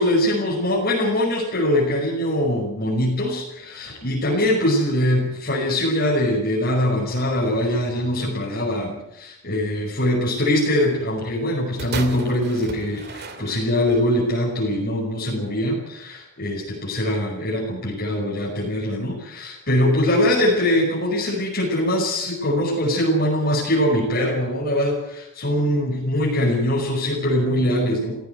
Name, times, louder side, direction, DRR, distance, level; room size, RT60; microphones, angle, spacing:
voice 1, 0.0-28.2, left 1 dB, 45° left, -4 dB, 5.6 m, -22 dB
sound 1, 11.8-14.0 14.8-14.9, right 3 dB, 50° right, 2.6 m, -34 dB
17.0 x 16.5 x 9.3 m, 0.87 s
head